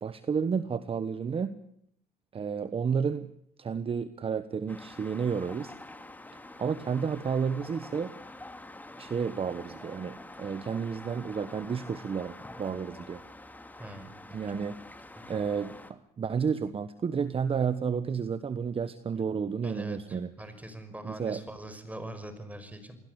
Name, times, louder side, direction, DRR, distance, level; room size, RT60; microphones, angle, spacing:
voice 1, 0.0-1.5 2.3-3.3 3.6-5.7 6.6-8.1 9.0-13.2 14.3-14.8 15.3-20.3 21.0-21.4, right 6 dB, 35° right, 13 dB, 1.3 m, -31 dB
sound 1, 4.7-15.9, left 2 dB, 10° left, 2.8 m, -47 dB
voice 2, 13.8-14.1 15.1-15.2 19.6-23.0, right 1 dB, 10° right, 10 dB, 5.6 m, -42 dB
28.5 x 21.0 x 8.2 m, 0.69 s
cardioid pair, 110°, 17 cm